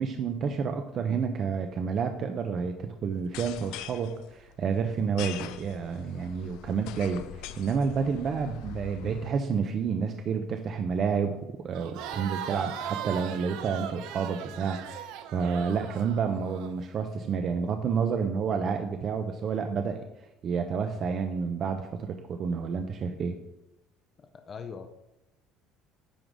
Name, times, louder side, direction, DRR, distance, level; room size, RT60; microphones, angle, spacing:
voice 1, 0.0-11.3 11.6-20.1 20.4-23.4, right 6 dB, 35° right, 6 dB, 0.6 m, -30 dB
sound 1, 3.2-9.3, left 10 dB, 70° left, 0.5 m, -43 dB
Crowd, 11.7-16.7, right 10 dB, 70° right, 0.7 m, -38 dB
voice 2, 24.2-24.9, left 6 dB, 25° left, 7 dB, 0.6 m, -41 dB
10.0 x 3.7 x 6.2 m, 0.97 s
cardioid pair, 160°, 0 cm